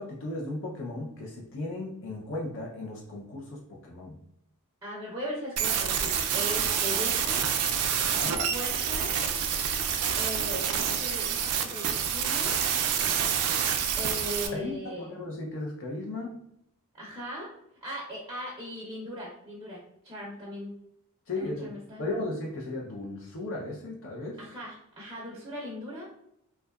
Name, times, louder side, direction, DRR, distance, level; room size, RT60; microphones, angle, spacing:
voice 1, 0.0-4.2 7.9-8.4 14.5-16.3 21.3-21.7 22.0-24.4, left 2 dB, 60° left, -2 dB, 0.5 m, -36 dB
voice 2, 4.8-7.5 8.5-9.2 10.2-12.6 14.0-15.1 16.9-17.5 17.8-20.8 21.3-22.0 24.4-26.0, equal, 15° right, -5 dB, 0.5 m, -38 dB
sound 1, 5.6-14.5, right 8 dB, 85° right, 0.4 m, -27 dB
2.7 x 2.2 x 2.2 m, 0.75 s
head